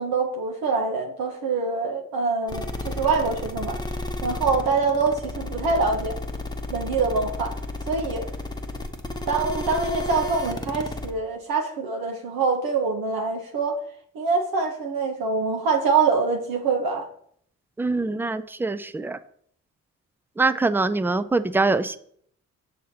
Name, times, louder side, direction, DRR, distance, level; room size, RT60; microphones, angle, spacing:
voice 1, 0.0-3.8 4.2-6.1 6.7-7.5 7.9-8.2 9.3-13.8 14.1-17.0, right 4 dB, 80° right, 3 dB, 0.7 m, -24 dB
sound 1, 2.5-11.1, left 2 dB, 10° left, 0.8 m, -32 dB
voice 2, 17.8-19.2 20.4-22.0, right 3 dB, 5° right, 13 dB, 0.3 m, -23 dB
6.3 x 2.8 x 5.7 m, 0.64 s
supercardioid pair, 45°, 35 cm